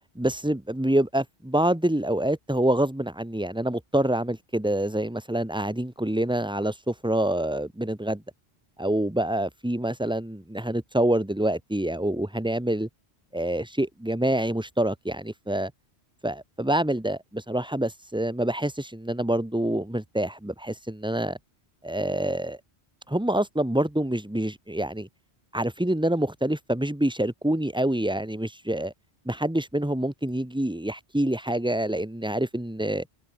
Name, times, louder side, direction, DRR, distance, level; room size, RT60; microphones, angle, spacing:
voice 1, 0.1-8.2 8.8-12.9 13.3-15.7 16.2-21.4 21.8-22.6 23.1-25.1 25.5-28.9 29.2-33.1, right 1 dB, 5° right, 1.4 m, -26 dB
open air
omnidirectional pair, 1.1 m